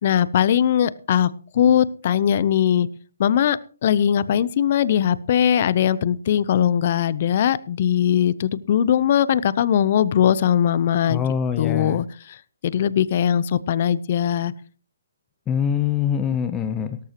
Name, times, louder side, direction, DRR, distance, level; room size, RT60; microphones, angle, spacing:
voice 1, 0.0-2.9 3.2-11.2 11.6-12.0 12.6-14.5, left 9 dB, 45° left, 19 dB, 0.8 m, -20 dB
voice 2, 11.1-12.0 15.5-17.0, left 8 dB, 15° left, 8 dB, 0.8 m, -24 dB
17.5 x 14.0 x 3.1 m, 0.39 s
hypercardioid pair, 140°, 0 cm